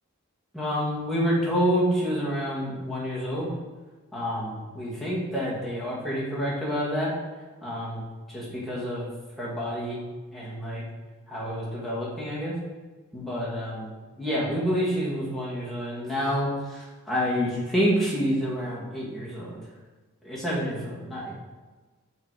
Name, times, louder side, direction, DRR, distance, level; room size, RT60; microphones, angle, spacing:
voice 1, 0.5-3.5 4.1-7.1 7.6-8.0 8.3-9.1 9.4-10.0 10.3-10.8 11.3-12.6 13.1-13.9 14.2-19.6 20.2-21.3, equal, ahead, -7 dB, 1.9 m, -28 dB
6.9 x 4.4 x 4.8 m, 1.3 s
head